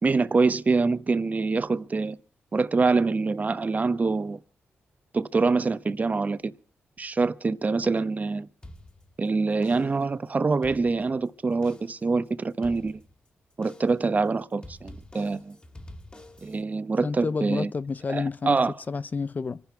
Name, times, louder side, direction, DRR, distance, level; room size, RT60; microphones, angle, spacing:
voice 1, 0.0-2.2 2.5-4.4 5.1-6.5 7.0-8.5 9.2-13.0 13.6-15.6 16.4-17.7 18.1-18.7, right 4 dB, 35° right, 1.0 m, -25 dB
sound 1, 8.6-9.3 9.6-10.1 10.5-11.3 11.6-12.1 12.6-13.3 13.6-14.1 14.6-16.6, left 1 dB, 25° left, 2.8 m, -47 dB
voice 2, 17.0-18.6 18.9-19.6, left 4 dB, 40° left, 0.6 m, -29 dB
24.5 x 10.5 x 4.7 m
cardioid pair, 65°, 4 cm